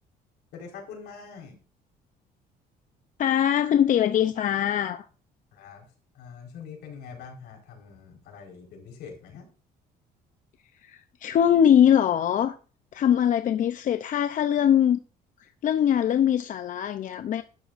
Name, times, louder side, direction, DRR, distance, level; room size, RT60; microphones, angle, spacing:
voice 1, 0.5-1.6 5.5-5.9 6.1-9.5, left 6 dB, 80° left, 4.5 m, -44 dB
voice 2, 3.2-5.1 10.8-12.6 12.9-15.0 15.4-17.4, left 9 dB, 50° left, 0.6 m, -22 dB
12.5 x 11.0 x 2.6 m
cardioid pair, 110°, 17 cm